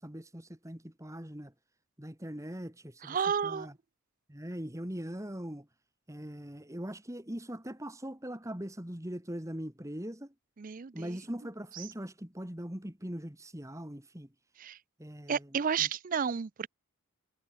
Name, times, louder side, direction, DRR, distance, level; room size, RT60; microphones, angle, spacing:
voice 1, 0.0-1.5 2.0-3.2 3.4-3.7 4.3-5.7 6.1-10.3 10.9-14.3 15.0-15.9, equal, 15° right, 2.2 m, -41 dB
voice 2, 3.0-3.7 10.6-11.1 14.6-14.8 15.3-16.7, right 7 dB, 35° right, 0.4 m, -31 dB
head